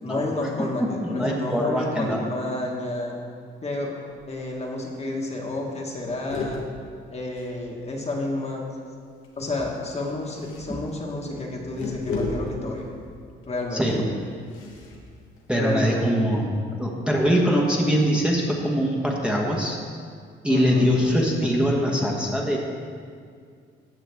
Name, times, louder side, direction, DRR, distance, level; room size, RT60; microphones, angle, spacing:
voice 1, 0.0-3.2 3.6-4.0 4.3-6.6 7.1-8.6 9.4-12.9 13.5-13.8 15.5-16.2 20.5-20.9, left 2 dB, 35° left, -1 dB, 1.6 m, -30 dB
voice 2, 0.8-2.2 13.7-14.0 15.5-16.5 16.8-19.8 20.4-22.6, equal, 5° right, -2 dB, 1.3 m, -22 dB
sound 1, 4.1-4.5 4.9-5.0 5.2-5.5 5.8-8.1 9.2-16.2, left 3 dB, 90° left, 1.3 m, -36 dB
15.0 x 6.0 x 3.5 m, 2.2 s
cardioid pair, 90°, 20 cm